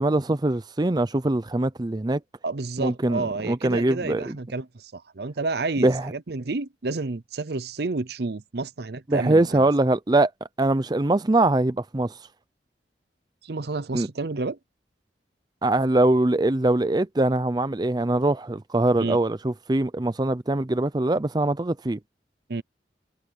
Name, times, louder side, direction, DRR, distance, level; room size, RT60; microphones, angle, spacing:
voice 1, 0.0-2.2 2.8-4.3 5.8-6.1 9.1-10.3 10.6-12.2 13.9-14.1 15.6-22.0, right 2 dB, 25° right, 0.5 m, -22 dB
voice 2, 2.4-9.7 13.4-14.6 19.0-19.2 22.5-22.6, right 3 dB, 60° right, 0.7 m, -30 dB
head